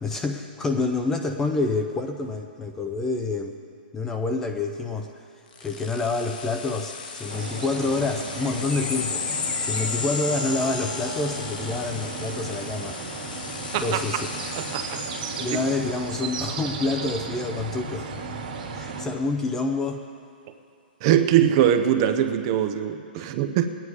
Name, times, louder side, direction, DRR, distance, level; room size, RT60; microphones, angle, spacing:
voice 1, 0.0-3.6 3.9-5.1 5.6-13.0 13.8-14.3 15.4-18.1 18.7-20.0 23.2-23.3, left 3 dB, 10° left, 4 dB, 0.5 m, -27 dB
sound 1, 5.5-16.6, left 5 dB, 55° left, 1.3 m, -34 dB
sound 2, 7.3-19.1, right 4 dB, 60° right, 1.9 m, -35 dB
voice 2, 14.6-15.0 21.0-23.6, right 10 dB, 30° right, 8 dB, 0.6 m, -22 dB
18.0 x 9.6 x 4.8 m, 2.4 s
hypercardioid pair, 165°, 5 cm